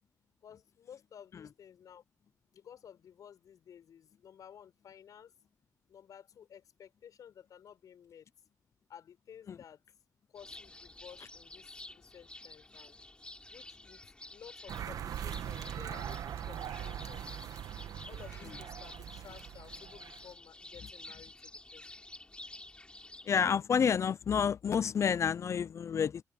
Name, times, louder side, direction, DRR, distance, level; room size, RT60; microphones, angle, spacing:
voice 1, 0.4-2.0 2.5-5.3 5.9-8.3 8.9-9.8 10.3-13.0 13.5-17.2 17.5-21.9, left 8 dB, 80° left, 7.2 m, -54 dB
sound 1, 10.3-23.4, left 2 dB, 15° left, 7.9 m, -51 dB
sound 2, 14.7-20.3, right 10 dB, 90° right, 1.2 m, -41 dB
voice 2, 23.3-26.2, left 7 dB, 55° left, 0.5 m, -29 dB
open air
cardioid pair, 100°, 6 cm